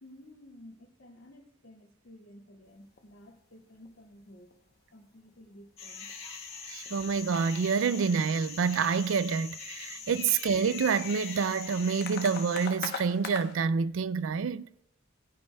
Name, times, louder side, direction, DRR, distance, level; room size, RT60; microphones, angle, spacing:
voice 1, 0.0-4.5 4.9-6.1 9.9-10.1, left 1 dB, 90° left, 2.2 m, -53 dB
sound 1, 2.7-3.1 3.4-3.6 3.9-4.1 4.4-4.7 5.0-5.6 6.1-6.2 6.9-7.2 8.0-8.9 9.1-13.7, left 6 dB, 50° left, 0.9 m, -42 dB
sound 2, 5.8-12.7, left 5 dB, 30° left, 1.7 m, -43 dB
voice 2, 6.7-14.7, right 5 dB, 70° right, 0.4 m, -28 dB
18.5 x 9.6 x 2.3 m
head